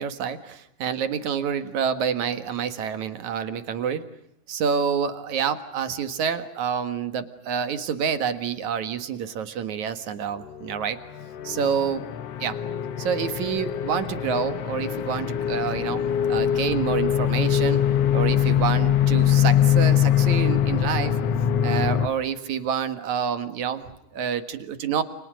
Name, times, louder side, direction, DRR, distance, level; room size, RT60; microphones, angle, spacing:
voice 1, 0.0-4.1 4.5-11.0 11.4-12.1 12.4-12.6 13.0-17.9 18.1-21.2 21.6-25.0, right 7 dB, 55° right, 10 dB, 2.6 m, -28 dB
sound 1, 11.2-22.1, left 10 dB, 75° left, 1.4 m, -23 dB
30.0 x 29.5 x 6.4 m, 0.77 s
omnidirectional pair, 4.5 m